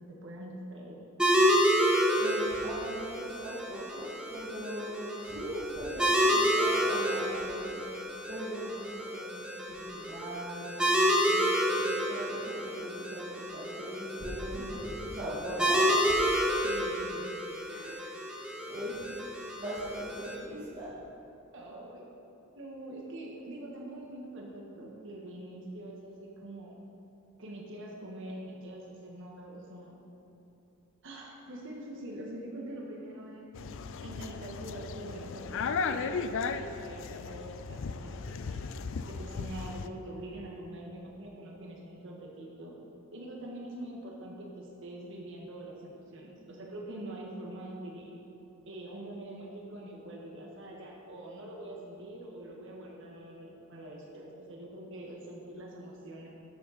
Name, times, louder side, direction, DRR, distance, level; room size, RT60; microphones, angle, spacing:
voice 1, 0.1-1.0 14.5-14.9 16.6-17.3 21.5-22.1 22.5-26.8 27.4-29.9 31.0-33.5 34.0-38.6 39.1-42.8 43.1-48.1 48.7-56.3, right 1 dB, 65° right, -2 dB, 1.6 m, -44 dB
sound 1, 1.2-20.3, equal, 5° right, 1.2 m, -29 dB
voice 2, 2.2-10.9 11.2-16.2 17.6-18.0 18.3-18.4 18.7-19.2 19.5-20.9, equal, 35° right, -12 dB, 2.2 m, -40 dB
sound 2, 33.5-39.9, left 5 dB, 65° left, 0.4 m, -36 dB
12.0 x 7.7 x 4.2 m, 2.8 s
head